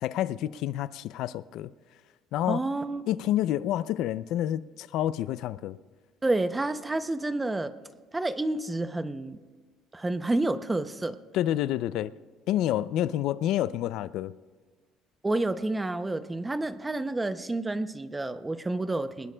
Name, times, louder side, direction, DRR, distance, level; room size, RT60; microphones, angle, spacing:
voice 1, 0.0-1.7 2.3-2.6 3.1-5.8 11.3-12.1 12.5-14.3, left 12 dB, 65° left, 0.3 m, -28 dB
voice 2, 2.5-3.1 6.2-7.7 8.1-9.4 9.9-11.2 15.2-19.3, right 2 dB, 10° right, 0.5 m, -29 dB
22.0 x 19.5 x 2.2 m
cardioid pair, 145°, 0 cm